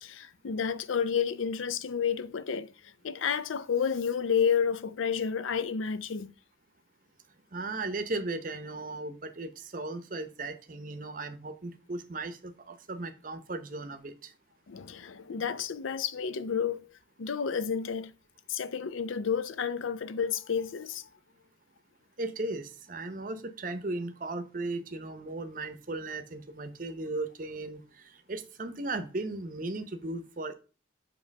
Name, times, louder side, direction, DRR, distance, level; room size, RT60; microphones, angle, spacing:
voice 1, 0.0-2.7 3.0-6.3 14.7-16.9 17.2-18.1 18.5-21.1, left 7 dB, 90° left, 0.5 m, -30 dB
voice 2, 7.5-14.3 22.2-30.5, right 2 dB, 45° right, 0.7 m, -36 dB
7.2 x 3.0 x 5.2 m
head